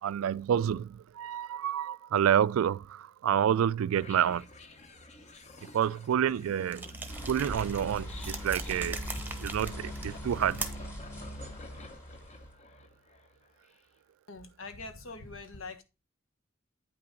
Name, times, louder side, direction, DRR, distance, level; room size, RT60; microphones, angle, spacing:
voice 1, 0.0-4.5 5.6-7.0 7.3-9.1 9.4-10.7, right 9 dB, 80° right, 0.3 m, -28 dB
sound 1, 3.9-13.2, left 1 dB, 35° left, 0.9 m, -45 dB
sound 2, 6.7-11.0, right 3 dB, 10° right, 0.9 m, -41 dB
sound 3, 7.1-12.5, equal, 10° left, 2.2 m, -42 dB
voice 2, 14.3-15.8, left 3 dB, 75° left, 1.2 m, -43 dB
8.8 x 5.8 x 3.8 m
head